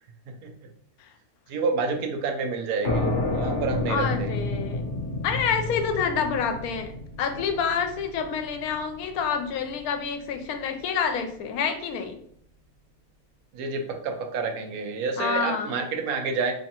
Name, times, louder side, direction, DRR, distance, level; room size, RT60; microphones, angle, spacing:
voice 1, 1.5-4.3 13.5-16.5, right 4 dB, 80° right, 4 dB, 1.0 m, -29 dB
sound 1, 2.8-10.2, left 2 dB, 55° left, 0.9 m, -30 dB
voice 2, 3.9-4.9 5.2-6.9 7.2-12.2 15.2-15.8, left 6 dB, 80° left, 7 dB, 1.0 m, -28 dB
3.4 x 3.1 x 2.8 m, 0.64 s
omnidirectional pair, 1.6 m